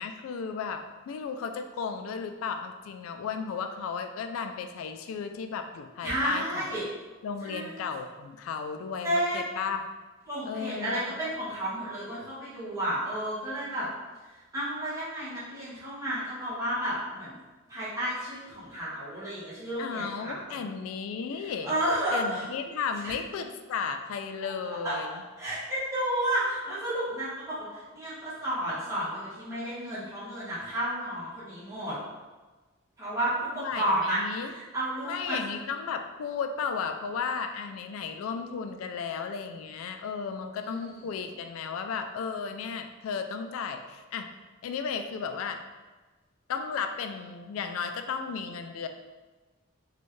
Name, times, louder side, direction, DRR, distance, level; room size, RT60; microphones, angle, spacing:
voice 1, 0.0-6.7 7.2-9.8 10.4-11.0 19.8-21.7 22.1-25.2 33.6-34.5 35.0-44.3 44.6-45.6 46.5-48.9, left 6 dB, 85° left, 6 dB, 0.3 m, -34 dB
voice 2, 6.0-6.8 7.4-7.8 9.0-9.4 10.3-13.9 14.5-17.3 17.7-20.7 21.4-22.5 23.0-23.2 24.8-32.0 33.0-35.4 40.6-40.8, right 1 dB, 15° right, -10 dB, 1.2 m, -32 dB
4.2 x 2.3 x 3.1 m, 1.3 s
head